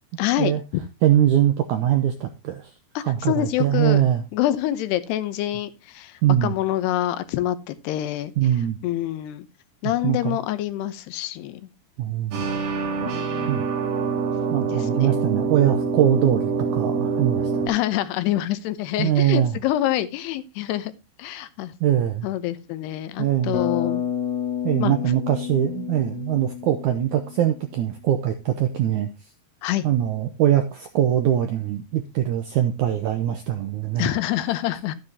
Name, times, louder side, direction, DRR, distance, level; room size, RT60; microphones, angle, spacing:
voice 1, 0.2-0.8 3.0-4.0 4.3-8.3 8.8-9.5 9.8-11.6 13.1-13.7 14.7-15.1 17.7-20.9 21.2-21.7 22.2-24.0 24.8-24.9 29.6-29.9 34.0-35.0, left 13 dB, 85° left, 13 dB, 3.0 m, -26 dB
voice 2, 1.0-2.7 3.0-4.2 6.2-6.5 8.4-8.8 9.8-10.4 12.0-12.5 13.5-13.7 14.5-17.6 19.0-19.6 21.8-22.3 23.2-23.6 24.6-29.1 29.8-34.1, right 11 dB, 80° right, 7 dB, 1.7 m, -22 dB
sound 1, 12.3-17.7, right 5 dB, 60° right, 4.0 m, -25 dB
Bass guitar, 23.5-27.6, left 9 dB, 50° left, 2.7 m, -30 dB
12.0 x 9.5 x 2.8 m, 0.26 s
omnidirectional pair, 4.6 m